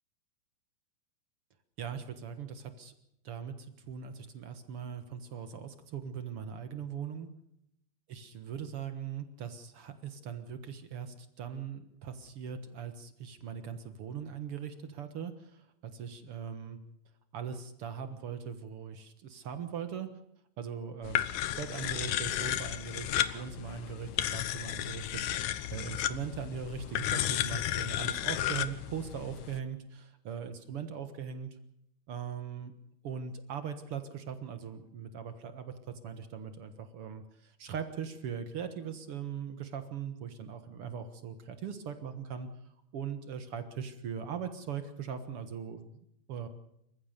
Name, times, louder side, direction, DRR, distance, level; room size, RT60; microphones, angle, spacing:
voice 1, 1.8-2.9 3.2-7.3 8.1-16.8 17.3-20.1 20.6-21.2 21.6-31.5 32.1-32.7 33.0-35.7 36.0-42.5 42.9-46.5, right 7 dB, 60° right, 9 dB, 1.5 m, -40 dB
sound 1, 21.0-29.6, left 12 dB, 70° left, 1.9 m, -33 dB
28.0 x 15.0 x 6.8 m, 0.78 s
omnidirectional pair, 4.5 m